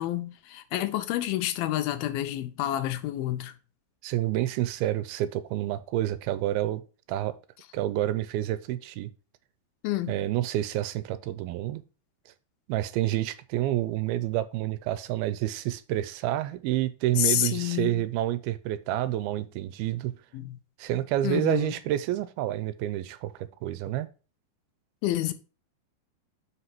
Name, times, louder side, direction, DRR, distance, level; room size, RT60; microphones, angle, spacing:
voice 1, 0.0-3.5 9.8-10.1 17.2-18.1 20.3-20.6 21.2-21.7 25.0-25.3, left 14 dB, 80° left, 2.5 m, -29 dB
voice 2, 4.0-6.8 7.1-7.3 7.7-9.1 10.1-11.8 12.7-20.2 20.8-24.1, right 14 dB, 85° right, 2.6 m, -29 dB
5.7 x 5.6 x 6.0 m
omnidirectional pair, 4.3 m